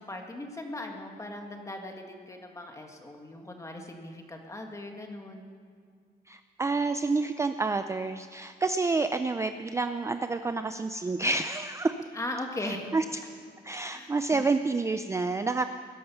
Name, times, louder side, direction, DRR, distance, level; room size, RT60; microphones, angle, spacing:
voice 1, 0.0-5.5 12.1-12.9 13.9-14.4, left 1 dB, 15° left, 3 dB, 1.8 m, -39 dB
voice 2, 6.3-12.0 12.9-13.0 13.6-15.7, right 3 dB, 15° right, 9 dB, 0.4 m, -28 dB
20.5 x 11.0 x 5.7 m, 2.1 s
wide cardioid pair, 140°, 18 cm